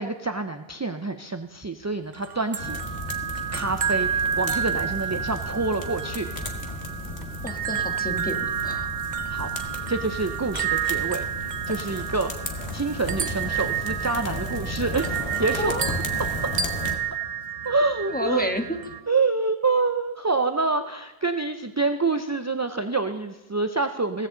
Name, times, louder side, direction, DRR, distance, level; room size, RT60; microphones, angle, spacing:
voice 1, 0.0-2.8 3.5-6.3 9.3-9.5 9.9-11.2 11.7-12.3 12.7-15.8 17.6-18.5 19.1-24.3, right 3 dB, 25° right, 8 dB, 0.4 m, -27 dB
sound 1, 2.1-19.0, right 8 dB, 50° right, 0.7 m, -30 dB
sound 2, 2.6-17.0, left 2 dB, 90° left, 1.9 m, -34 dB
voice 2, 7.4-8.9 15.6-15.9 18.1-18.8, equal, 10° left, 5 dB, 1.2 m, -30 dB
16.5 x 15.0 x 3.9 m, 1.1 s
omnidirectional pair, 1.1 m